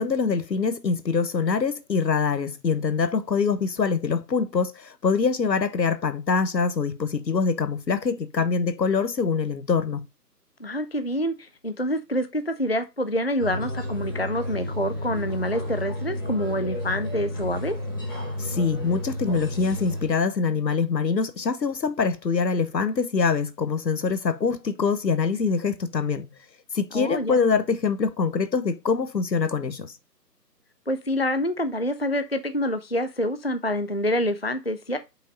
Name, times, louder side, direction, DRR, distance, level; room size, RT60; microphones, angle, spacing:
voice 1, 0.0-10.0 18.4-26.3 26.7-29.9, left 5 dB, 90° left, 1.2 m, -24 dB
voice 2, 10.6-17.8 26.9-27.5 30.9-35.0, equal, 40° left, 0.4 m, -27 dB
sound 1, 13.4-20.1, left 1 dB, 15° left, 1.7 m, -31 dB
5.6 x 5.2 x 5.2 m
figure-of-eight pair, 170°, 49 cm